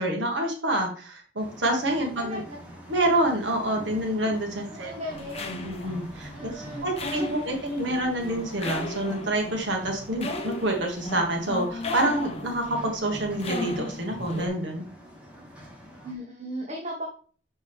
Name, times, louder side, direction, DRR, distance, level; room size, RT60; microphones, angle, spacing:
voice 1, 0.0-2.4 2.9-4.9 5.6-14.8, right 1 dB, 75° right, 2 dB, 1.6 m, -27 dB
sound 1, 1.4-16.1, equal, 5° right, 1.7 m, -46 dB
voice 2, 1.9-2.6 4.6-5.6 6.3-6.9 7.1-7.3 16.0-17.1, equal, 40° right, -2 dB, 1.3 m, -37 dB
sound 2, 5.1-14.5, left 2 dB, 35° left, 0.7 m, -36 dB
6.5 x 5.3 x 3.4 m, 0.42 s
head